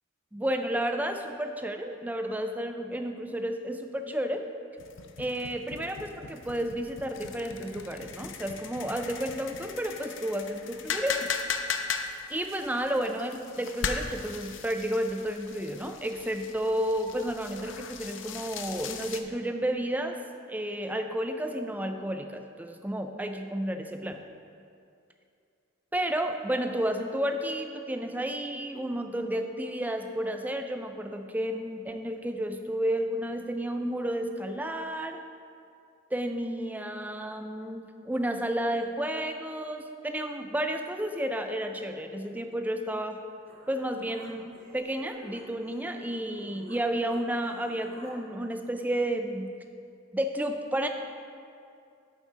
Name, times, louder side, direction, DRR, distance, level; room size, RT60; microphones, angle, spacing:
voice 1, 0.3-4.5 5.2-11.3 12.3-20.2 20.5-24.2 25.9-35.2 36.1-43.2 43.7-49.5 50.1-50.9, right 1 dB, 10° right, 6 dB, 0.4 m, -31 dB
sound 1, 4.8-19.2, left 6 dB, 65° left, 0.6 m, -38 dB
Human voice, 43.5-46.8 47.1-48.1, right 1 dB, 75° right, 1.8 m, -51 dB
8.3 x 6.8 x 4.9 m, 2.4 s
head